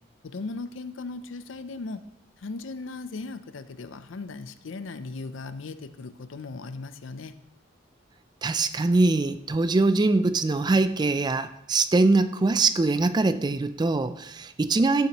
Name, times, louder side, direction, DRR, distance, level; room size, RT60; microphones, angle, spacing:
voice 1, 0.2-2.0 2.4-7.3, left 3 dB, 75° left, 12 dB, 0.5 m, -37 dB
voice 2, 8.4-15.1, right 3 dB, 20° right, 12 dB, 0.3 m, -23 dB
14.5 x 7.1 x 3.0 m, 0.79 s
head